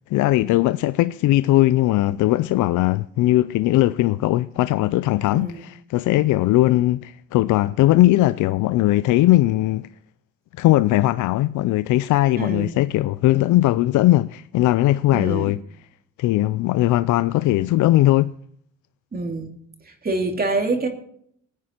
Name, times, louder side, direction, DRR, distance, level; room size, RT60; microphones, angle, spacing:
voice 1, 0.1-9.9 10.6-15.6 16.2-18.3, left 16 dB, 80° left, 0.5 m, -19 dB
voice 2, 5.3-5.7 12.4-12.7 15.1-15.5 19.1-19.5 19.8-20.9, right 2 dB, 30° right, 2.5 m, -26 dB
18.0 x 9.4 x 4.4 m
cardioid pair, 90°, 30 cm